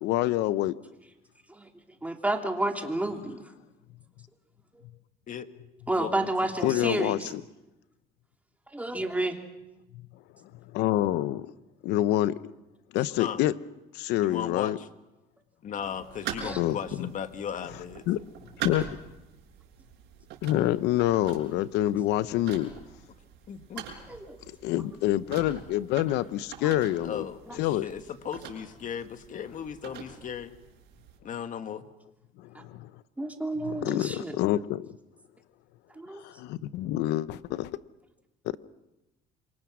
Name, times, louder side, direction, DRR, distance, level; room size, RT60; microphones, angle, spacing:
voice 1, 0.0-0.7 6.6-7.4 9.9-10.0 10.7-11.5 11.8-12.4 12.9-13.5 13.9-14.8 16.6-17.1 18.1-18.2 18.6-18.9 20.4-22.7 24.6-27.3 27.6-27.9 32.4-32.9 33.6-34.9 36.2-37.7, left 14 dB, 90° left, 16 dB, 0.8 m, -27 dB
voice 2, 2.0-3.4 5.9-7.3 8.7-9.4 16.4-16.6 24.1-24.4 26.6-26.7 33.2-34.4 36.0-36.2, right 2 dB, 10° right, 3 dB, 3.0 m, -30 dB
voice 3, 5.9-6.9 13.2-13.5 14.2-14.9 15.6-18.0 23.5-23.9 27.0-30.5 31.2-31.9, left 8 dB, 50° left, 9 dB, 1.6 m, -37 dB
sound 1, 15.8-31.2, right 8 dB, 85° right, 6.1 m, -43 dB
27.5 x 24.0 x 6.2 m, 0.98 s
cardioid pair, 110°, 17 cm